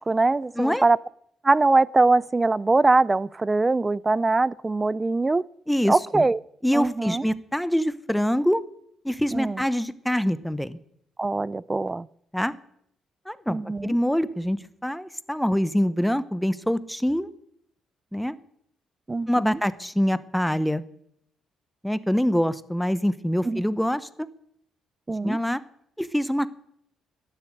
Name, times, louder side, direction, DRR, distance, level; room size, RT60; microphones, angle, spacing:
voice 1, 0.1-1.0 1.4-5.4 5.9-6.4 6.7-7.2 9.3-9.6 11.2-12.1 13.5-13.9 19.1-19.6 23.4-23.6 25.1-25.4, right 3 dB, 20° right, 22 dB, 0.5 m, -22 dB
voice 2, 5.7-6.3 6.6-8.6 9.0-10.8 12.3-12.5 13.3-17.3 18.1-18.3 19.3-20.8 21.8-24.1 25.2-25.6 26.0-26.5, equal, 5° left, 14 dB, 1.0 m, -25 dB
12.5 x 11.5 x 9.2 m, 0.71 s
cardioid pair, 90°, 0 cm